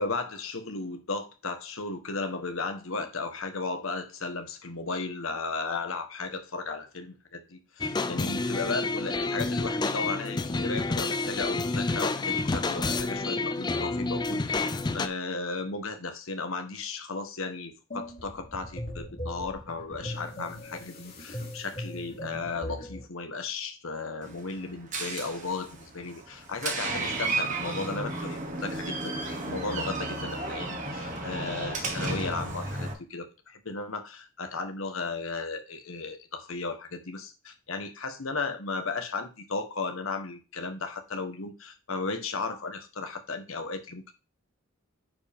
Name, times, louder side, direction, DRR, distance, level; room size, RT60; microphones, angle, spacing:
voice 1, 0.0-44.1, left 3 dB, 70° left, 1.3 m, -35 dB
sound 1, 7.8-15.1, left 3 dB, 20° left, 0.4 m, -29 dB
sound 2, 17.9-23.1, equal, 45° left, 3.3 m, -39 dB
Door, 24.2-32.9, right 2 dB, 35° right, 1.5 m, -33 dB
9.5 x 4.8 x 3.6 m
head